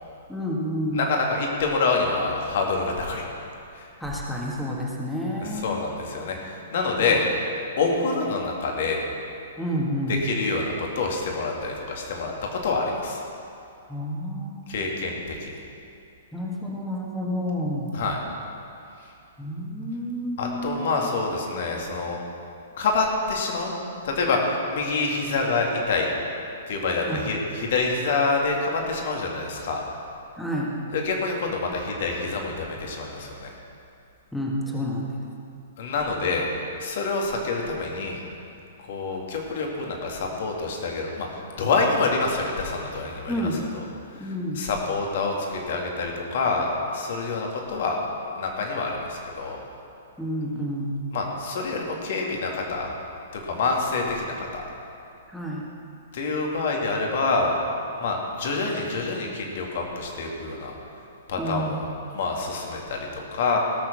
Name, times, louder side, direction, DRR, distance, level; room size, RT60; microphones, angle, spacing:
voice 1, 0.3-1.1 4.0-5.8 7.0-7.2 9.6-10.2 13.9-15.2 16.3-17.9 19.4-21.1 27.0-27.3 30.4-30.7 34.3-35.2 43.3-43.6 44.2-44.6 50.2-51.0 55.3-55.7 61.4-61.8, equal, 5° left, -4 dB, 1.7 m, -30 dB
voice 2, 0.9-3.2 3.8-3.9 5.4-7.3 7.8-9.0 10.1-13.2 14.7-15.6 17.9-18.2 20.4-22.2 22.8-23.7 24.0-26.1 26.7-29.8 30.9-33.5 35.8-36.5 36.8-38.2 38.9-41.3 41.6-43.8 44.2-44.3 44.6-48.0 48.3-49.6 51.1-52.9 53.3-54.6 56.1-57.6 58.0-60.8 61.3-63.6, left 3 dB, 55° left, 0 dB, 2.3 m, -27 dB
18.0 x 6.7 x 6.3 m, 2.6 s
figure-of-eight pair, 115°, 0 cm